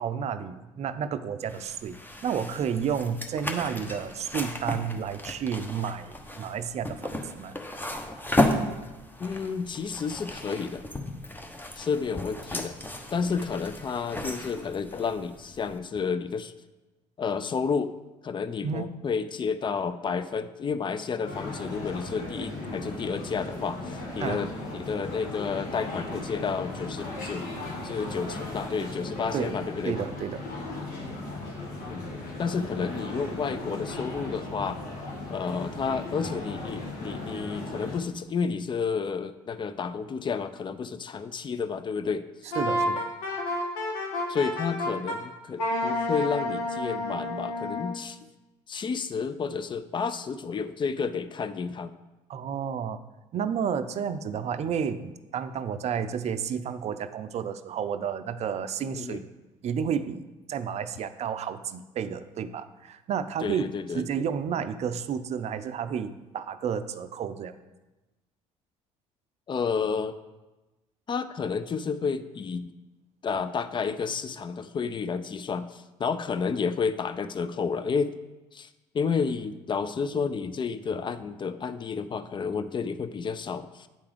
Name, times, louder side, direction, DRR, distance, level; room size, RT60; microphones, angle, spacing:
voice 1, 0.0-1.9 2.2-7.6 18.6-18.9 24.2-24.4 29.3-29.6 29.8-30.4 42.6-43.1 52.3-53.0 53.3-59.2 59.6-63.6 63.9-67.6, right 7 dB, 50° right, 11 dB, 0.5 m, -31 dB
sound 1, 1.5-15.8, left 1 dB, 15° left, 0.9 m, -34 dB
voice 2, 9.2-10.8 11.8-12.7 13.1-16.5 17.2-17.9 18.2-27.5 27.8-30.0 31.9-32.1 32.4-34.8 35.3-42.6 44.3-48.2 48.7-51.9 58.9-59.2 63.4-64.1 69.5-70.2 71.1-72.7 73.2-78.2 78.5-78.7 78.9-83.9, left 5 dB, 35° left, 12 dB, 0.5 m, -31 dB
sound 2, 21.2-38.0, left 2 dB, 65° left, 1.6 m, -37 dB
Wind instrument woodwind instrument, 42.5-45.2 45.6-48.0, left 1 dB, 90° left, 1.0 m, -30 dB
8.9 x 3.5 x 5.0 m, 1.1 s
hypercardioid pair, 65°, 15 cm